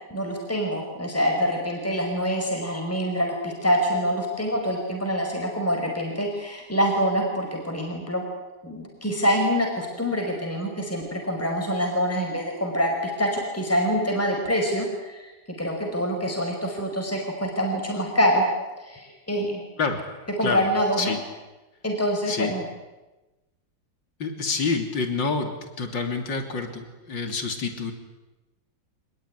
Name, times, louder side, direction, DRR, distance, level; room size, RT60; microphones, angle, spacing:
voice 1, 0.1-8.2 8.6-15.3 15.6-18.4 18.8-19.6 20.4-21.2 21.8-22.6, equal, 5° left, 1 dB, 5.2 m, -25 dB
voice 2, 24.2-27.9, left 4 dB, 65° left, 6 dB, 3.7 m, -28 dB
26.0 x 21.0 x 9.9 m, 1.1 s
omnidirectional pair, 2.1 m